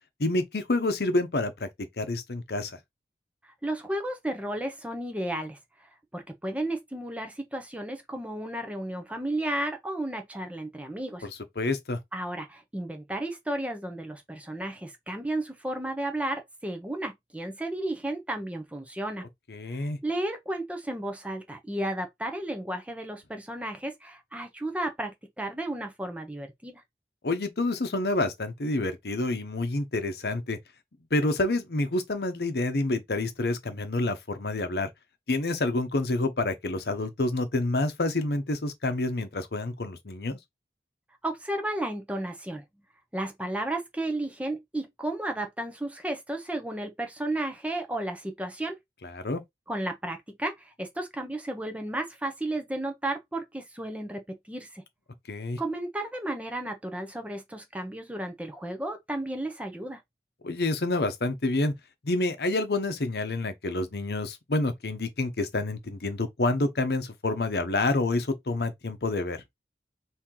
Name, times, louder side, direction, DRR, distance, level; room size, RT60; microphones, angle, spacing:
voice 1, 0.2-1.7 2.0-2.8 11.2-11.3 11.6-12.0 19.5-20.0 27.2-30.6 31.1-34.9 35.3-40.4 49.0-49.4 55.3-55.6 60.4-61.7 62.0-69.4, left 2 dB, 65° left, 0.8 m, -28 dB
voice 2, 3.4-5.6 6.1-11.3 12.1-19.2 19.7-26.8 41.2-42.6 43.1-48.8 49.7-54.8 55.6-60.0, right 1 dB, 10° right, 0.7 m, -33 dB
4.4 x 2.7 x 3.8 m
head